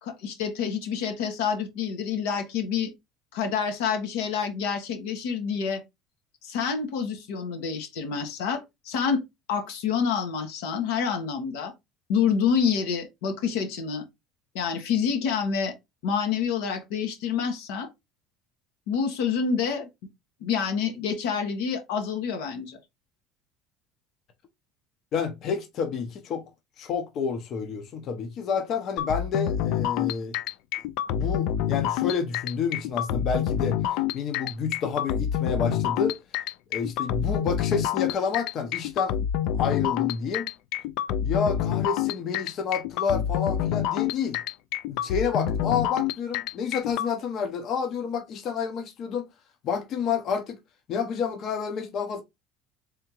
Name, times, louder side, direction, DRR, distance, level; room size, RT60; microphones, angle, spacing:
voice 1, 0.0-2.9 3.3-5.8 6.4-9.2 9.5-11.7 12.1-14.0 14.5-15.7 16.0-17.9 18.9-19.9 20.4-22.8, left 6 dB, 90° left, 1.1 m, -27 dB
voice 2, 25.1-26.4 26.8-30.4 31.1-36.2 36.7-39.1 39.5-40.5 41.2-44.4 44.9-49.3 49.6-50.6 50.9-52.2, left 6 dB, 45° left, 0.7 m, -29 dB
sound 1, 29.0-47.1, left 10 dB, 70° left, 0.3 m, -27 dB
3.5 x 3.5 x 2.9 m
cardioid pair, 135°, 0 cm